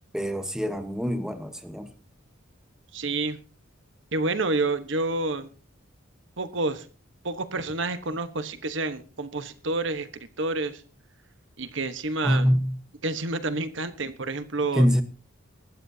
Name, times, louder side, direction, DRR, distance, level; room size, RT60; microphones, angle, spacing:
voice 1, 0.1-1.9 12.2-12.8 14.7-15.0, equal, 5° right, 1.1 m, -24 dB
voice 2, 2.9-3.4 4.1-5.5 6.4-6.9 7.2-10.8 11.6-12.5 13.0-14.9, right 2 dB, 60° right, 1.2 m, -29 dB
23.5 x 12.5 x 2.8 m
head